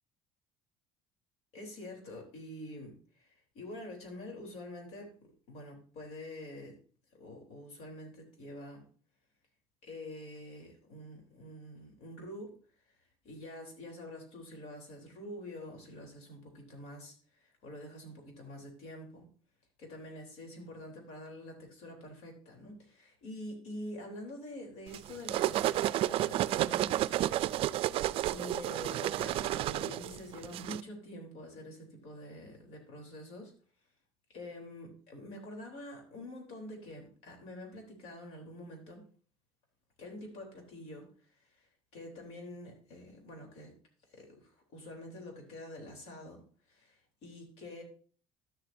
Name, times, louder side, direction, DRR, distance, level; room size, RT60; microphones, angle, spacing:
voice 1, 1.5-5.1 5.5-6.8 7.2-8.8 9.8-12.5 13.2-19.3 19.8-27.4 28.3-33.5 34.3-39.1 40.0-41.1 41.5-41.7 41.9-43.7 44.1-46.4 46.7-47.8, left 1 dB, 75° left, 2 dB, 3.6 m, -46 dB
sound 1, 24.9-30.8, right 14 dB, 55° right, 0.4 m, -31 dB
12.0 x 7.5 x 2.7 m, 0.42 s
cardioid pair, 120°, 11 cm